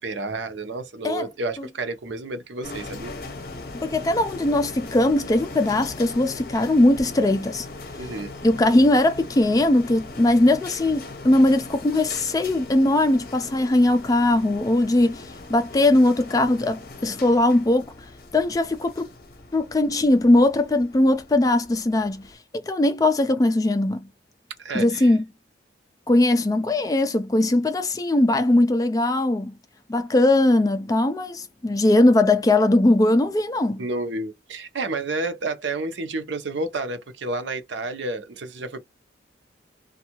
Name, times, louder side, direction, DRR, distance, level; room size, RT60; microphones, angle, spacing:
voice 1, 0.0-3.1 8.0-8.3 24.6-25.1 33.8-38.8, right 2 dB, 75° right, 0.7 m, -30 dB
sound 1, 2.6-22.3, left 3 dB, 50° left, 0.7 m, -40 dB
voice 2, 3.8-7.7 8.4-17.9 18.3-19.1 19.5-22.2 22.5-24.1 24.7-25.2 26.1-29.5 29.9-33.8, left 1 dB, 20° left, 0.3 m, -20 dB
2.6 x 2.3 x 2.8 m
head